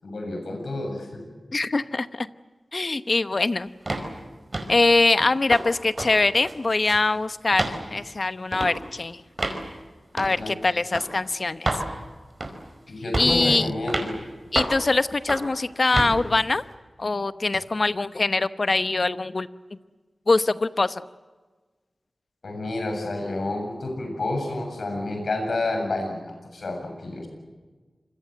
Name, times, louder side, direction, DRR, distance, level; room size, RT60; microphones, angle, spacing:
voice 1, 0.0-1.3 10.4-10.5 12.9-14.1 22.4-26.3 26.5-27.3, left 2 dB, 85° left, 3 dB, 7.5 m, -29 dB
voice 2, 1.5-2.3 2.7-3.7 4.7-9.2 10.1-11.7 13.2-13.7 14.5-16.6 17.0-19.5 20.3-21.0, left 3 dB, 55° left, 13 dB, 0.9 m, -23 dB
sound 1, 3.9-4.1 4.5-4.8 5.2-5.7 6.0-6.1 6.4-7.1 7.5-7.8 8.5-8.7 9.4-9.6 10.2-10.4 10.9-11.1 11.6-11.9 12.4-12.7 13.1-13.4 13.9-14.1 14.5-14.8 15.3-15.5 15.9-16.1, right 2 dB, 45° right, 4.8 m, -28 dB
27.0 x 22.0 x 8.0 m, 1.3 s
cardioid pair, 45°, 0 cm